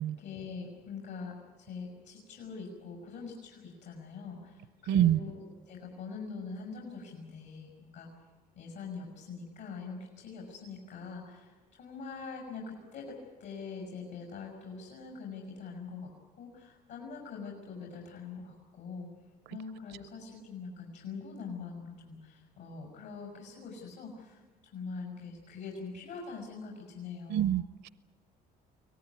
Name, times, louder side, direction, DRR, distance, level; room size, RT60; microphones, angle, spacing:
voice 1, 0.0-8.1 8.6-16.1 16.4-19.1 19.5-24.4 24.7-27.5, left 4 dB, 85° left, -1 dB, 6.2 m, -43 dB
voice 2, 4.9-5.2 27.3-27.9, right 11 dB, 80° right, 16 dB, 0.7 m, -26 dB
24.5 x 18.5 x 9.6 m, 1.3 s
cardioid pair, 110°, 17 cm